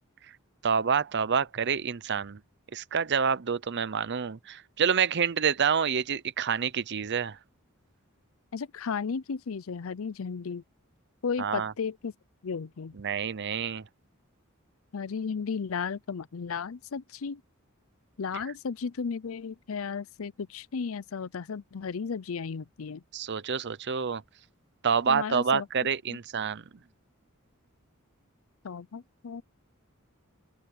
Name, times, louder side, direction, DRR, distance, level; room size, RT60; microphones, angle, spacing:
voice 1, 0.6-2.4 2.7-7.4 11.4-11.7 13.0-13.8 23.1-24.2 24.8-26.6, right 6 dB, 55° right, 0.7 m, -27 dB
voice 2, 8.5-10.6 11.2-12.1 12.4-12.9 14.9-17.4 18.2-23.0 25.1-25.7 26.1-26.2 28.6-29.4, left 5 dB, 70° left, 0.5 m, -34 dB
open air
head